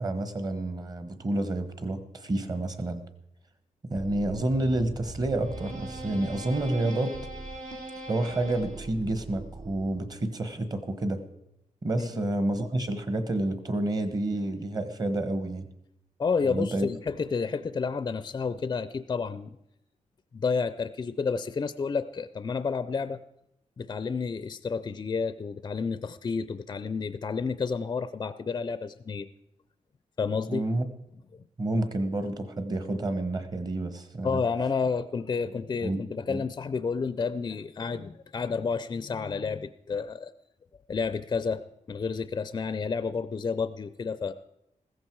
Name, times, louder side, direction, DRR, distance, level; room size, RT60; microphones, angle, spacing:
voice 1, 0.0-3.0 3.9-7.2 8.1-11.2 11.8-15.7 16.5-16.9 30.5-30.9 31.6-34.4 35.8-36.0 36.3-36.4, right 1 dB, 30° right, 10 dB, 1.2 m, -29 dB
sound 1, 4.0-10.2, right 2 dB, 80° right, 3.0 m, -40 dB
voice 2, 16.2-19.6 20.3-23.2 23.8-29.3 30.2-30.6 34.2-40.3 40.9-44.3, left 5 dB, 30° left, 13 dB, 0.4 m, -30 dB
15.5 x 14.0 x 4.6 m, 0.82 s
wide cardioid pair, 160°, 13 cm